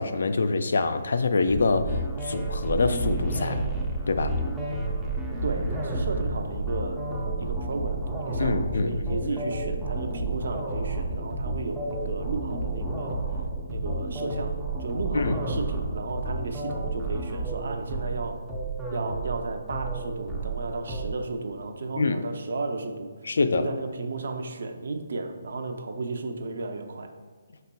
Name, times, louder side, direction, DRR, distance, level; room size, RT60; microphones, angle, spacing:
voice 1, 0.0-3.6 4.1-4.3 8.4-9.2 15.1-15.4 22.0-22.2 23.2-23.7, left 3 dB, 70° left, 10 dB, 0.3 m, -25 dB
sound 1, 1.5-21.1, right 2 dB, ahead, 0.4 m, -31 dB
voice 2, 5.4-7.1 7.4-13.2 13.7-18.4 18.9-23.1 23.5-27.1, right 3 dB, 60° right, 6 dB, 0.5 m, -34 dB
5.2 x 4.0 x 2.2 m, 1.5 s
hypercardioid pair, 170°, 0 cm